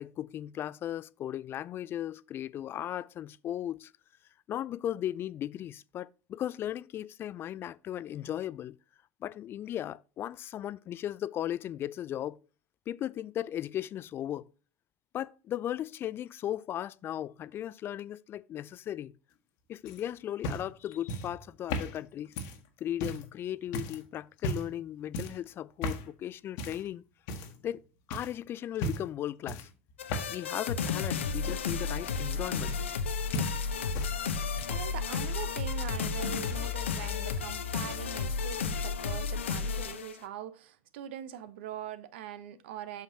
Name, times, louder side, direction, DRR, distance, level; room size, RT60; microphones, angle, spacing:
voice 1, 0.0-3.9 4.5-8.8 9.2-12.4 12.9-14.5 15.1-19.1 19.7-22.3 22.8-27.0 27.6-27.8 28.1-29.7 30.3-32.8 34.7-34.8, left 11 dB, 35° left, 0.4 m, -36 dB
sound 1, 19.9-23.3 23.7-24.0 24.4-24.8 25.1-25.4 25.8-26.1 26.6-26.9 27.3-27.8 28.1-28.3 28.8-29.2 29.5-30.5 30.8-33.1 33.3-34.2 34.4-34.9 35.9-36.0, left 1 dB, 55° left, 1.4 m, -37 dB
sound 2, 30.0-40.2, left 5 dB, 75° left, 0.8 m, -33 dB
voice 2, 34.7-43.0, right 10 dB, 65° right, 0.8 m, -42 dB
8.1 x 6.5 x 2.8 m
figure-of-eight pair, 75°, 7 cm